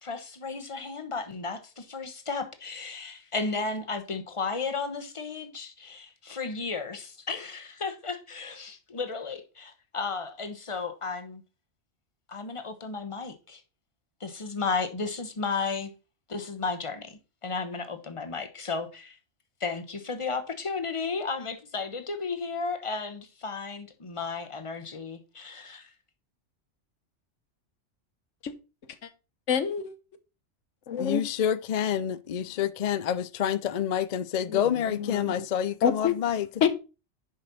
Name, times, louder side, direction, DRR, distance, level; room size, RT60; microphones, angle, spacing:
voice 1, 0.0-11.4 12.3-13.6 14.2-15.9 16.3-19.2 19.6-25.9, left 4 dB, 25° left, 1.1 m, -34 dB
voice 2, 29.5-30.0 30.9-31.2 34.5-34.6 35.0-35.4 35.8-36.1 36.6-36.7, left 7 dB, 85° left, 1.2 m, -27 dB
voice 3, 31.0-36.5, left 9 dB, 60° left, 0.4 m, -28 dB
10.5 x 5.3 x 4.1 m
omnidirectional pair, 1.3 m